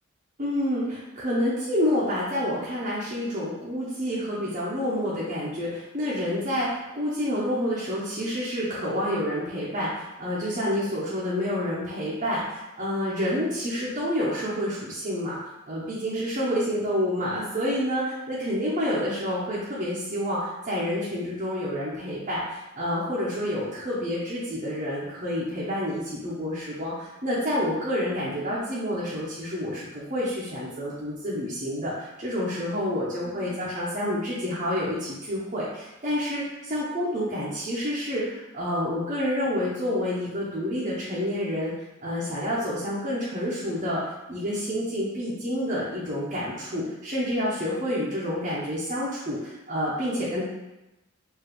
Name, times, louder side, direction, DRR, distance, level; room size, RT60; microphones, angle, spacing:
voice 1, 0.4-15.4 15.7-41.7 42.0-44.0 44.3-50.4, equal, 40° right, -8 dB, 0.8 m, -28 dB
4.9 x 2.7 x 3.1 m, 0.98 s
head